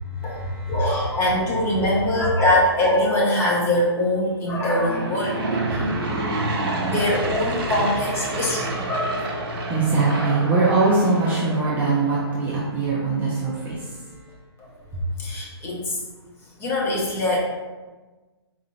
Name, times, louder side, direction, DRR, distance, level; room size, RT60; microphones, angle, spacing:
voice 1, 0.2-0.8 9.7-13.8 14.9-15.0, right 3 dB, 10° right, -7 dB, 0.6 m, -22 dB
voice 2, 0.7-5.4 5.7-5.8 6.8-9.2 15.2-16.0 16.6-17.4, left 1 dB, 15° left, -4 dB, 0.8 m, -22 dB
Aircraft / Engine, 4.5-12.5, right 2 dB, 55° right, 1.1 m, -28 dB
4.2 x 3.7 x 2.6 m, 1.2 s
figure-of-eight pair, 135°, 14 cm